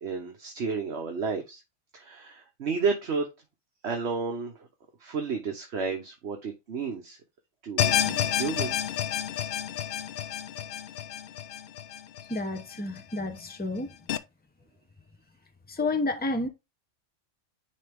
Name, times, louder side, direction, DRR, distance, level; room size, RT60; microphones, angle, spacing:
voice 1, 0.0-1.6 1.9-3.3 3.8-4.7 5.0-7.2 7.6-8.8, right 5 dB, 60° right, 1.3 m, -32 dB
sound 1, 7.8-13.0 13.4-13.5 14.1-14.2, left 10 dB, 60° left, 0.7 m, -30 dB
voice 2, 12.3-14.0 15.7-16.5, left 2 dB, 10° left, 0.7 m, -30 dB
10.0 x 3.4 x 3.5 m
omnidirectional pair, 1.3 m